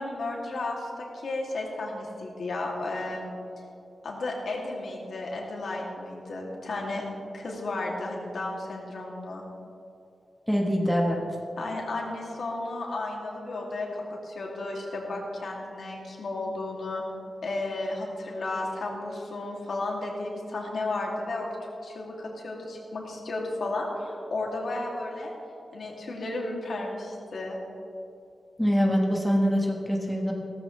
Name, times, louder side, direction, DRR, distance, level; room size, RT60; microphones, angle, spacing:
voice 1, 0.0-3.3 4.0-7.0 7.3-9.4 11.6-17.0 17.4-25.3 25.7-27.6, left 2 dB, 65° left, -2 dB, 2.5 m, -33 dB
voice 2, 10.5-11.2 28.6-30.3, equal, 5° left, -1 dB, 1.3 m, -24 dB
17.0 x 14.0 x 3.2 m, 2.8 s
wide cardioid pair, 175°, 0 cm